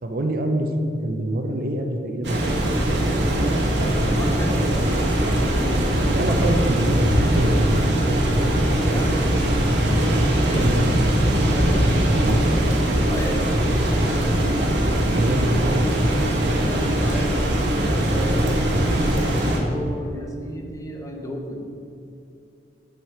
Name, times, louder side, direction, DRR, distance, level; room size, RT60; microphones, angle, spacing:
voice 1, 0.0-2.6 6.1-7.7 10.4-11.1 12.0-12.5 12.8-13.1 14.5-14.7 15.0-15.9, right 1 dB, 55° right, 5 dB, 0.6 m, -26 dB
sound 1, 2.2-19.6, right 1 dB, 80° right, 1.3 m, -21 dB
voice 2, 3.4-6.5 8.3-9.2 10.4-10.7 11.4-12.5 13.1-13.6 13.8-14.3 15.3-15.5 16.4-21.7, equal, 20° left, 1 dB, 0.8 m, -34 dB
7.2 x 6.6 x 4.6 m, 2.6 s
head